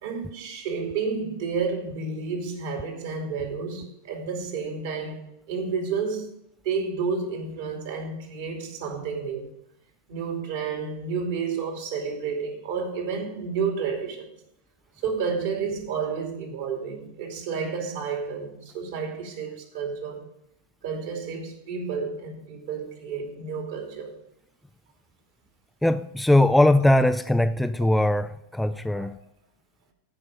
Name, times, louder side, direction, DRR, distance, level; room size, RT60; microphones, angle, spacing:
voice 1, 0.0-6.3 6.6-9.5 10.1-14.3 15.0-20.2 20.8-24.2 27.8-27.9 28.9-29.1, right 5 dB, 55° right, 2.7 m, -31 dB
voice 2, 25.8-29.2, left 1 dB, 5° left, 0.4 m, -20 dB
15.0 x 5.6 x 4.9 m
figure-of-eight pair, 90°, 0 cm